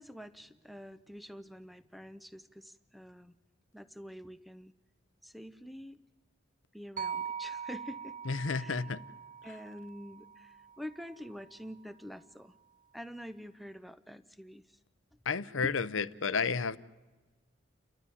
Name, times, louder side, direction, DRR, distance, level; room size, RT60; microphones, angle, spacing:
voice 1, 0.0-3.4 3.7-4.7 5.2-6.0 6.7-8.2 8.5-8.9 9.4-12.5 12.9-14.8 15.6-15.7, equal, ahead, 0.6 m, -46 dB
sound 1, 7.0-11.2, right 7 dB, 40° right, 0.7 m, -42 dB
voice 2, 8.3-9.0 15.3-16.8, left 5 dB, 80° left, 0.7 m, -31 dB
30.0 x 12.5 x 9.8 m
head